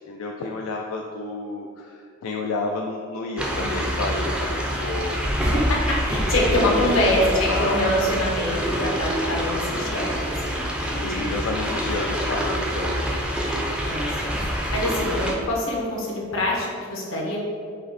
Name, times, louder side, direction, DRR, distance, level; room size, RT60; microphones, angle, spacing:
voice 1, 0.1-5.6 6.4-8.2 8.4-9.0 11.0-13.6, left 3 dB, 85° left, 0 dB, 0.3 m, -31 dB
sound 1, 3.4-15.3, equal, 5° right, 0.4 m, -26 dB
voice 2, 5.4-11.4 13.8-14.3 14.7-17.4, left 1 dB, 70° left, -3 dB, 0.9 m, -25 dB
5.1 x 2.1 x 4.0 m, 2.3 s
head